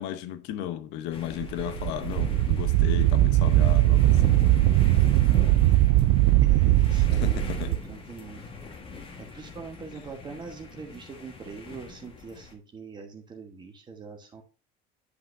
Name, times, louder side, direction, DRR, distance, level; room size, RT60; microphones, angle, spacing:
voice 1, 0.0-4.4 7.1-7.7, left 11 dB, 65° left, 0.9 m, -34 dB
sound 1, 1.1-12.5, left 4 dB, 30° left, 1.4 m, -42 dB
Wind, 1.4-7.8, right 15 dB, 75° right, 0.4 m, -20 dB
voice 2, 5.6-6.1 6.4-8.4 8.8-14.4, right 5 dB, 25° right, 1.2 m, -43 dB
9.8 x 5.7 x 2.6 m
cardioid pair, 155°, 19 cm